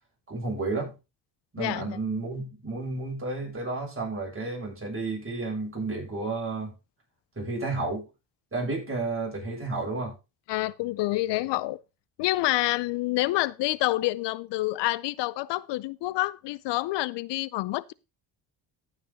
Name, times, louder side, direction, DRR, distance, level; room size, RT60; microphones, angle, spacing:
voice 1, 0.3-0.9 1.5-6.7 7.4-8.1 8.5-10.1, right 3 dB, 30° right, 7.3 m, -31 dB
voice 2, 1.6-2.0 10.5-11.8 12.2-17.9, left 18 dB, 80° left, 0.5 m, -28 dB
14.5 x 5.9 x 4.0 m
cardioid pair, 90°, 42 cm